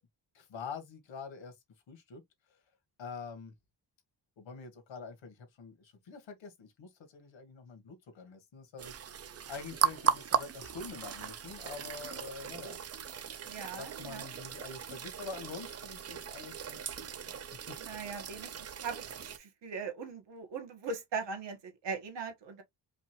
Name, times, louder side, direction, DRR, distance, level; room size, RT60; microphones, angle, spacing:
voice 1, 0.3-1.6 1.9-2.2 2.5-2.6 3.0-3.5 4.4-12.8 13.7-17.3 17.7-17.8, left 5 dB, 85° left, 1.7 m, -46 dB
sound 1, 8.8-19.4, right 7 dB, 35° right, 0.4 m, -37 dB
voice 2, 13.4-14.3 17.8-22.6, right 5 dB, 70° right, 1.5 m, -40 dB
5.1 x 2.5 x 3.0 m
wide cardioid pair, 170°, 44 cm